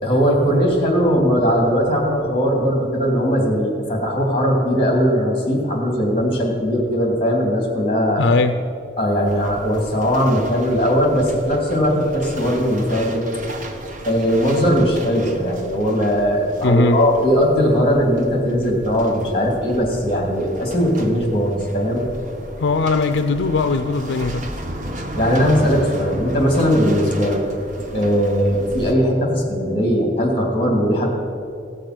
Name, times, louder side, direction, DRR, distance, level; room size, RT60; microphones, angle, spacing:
voice 1, 0.0-8.3 9.0-13.3 14.1-22.1 25.2-27.5 27.9-31.1, equal, 30° left, 0 dB, 2.8 m, -19 dB
voice 2, 8.2-8.6 16.6-17.0 22.6-24.5, left 3 dB, 75° left, 8 dB, 0.4 m, -19 dB
sound 1, 9.3-28.9, right 1 dB, 45° right, 1.1 m, -35 dB
16.5 x 6.7 x 6.0 m, 2.5 s
head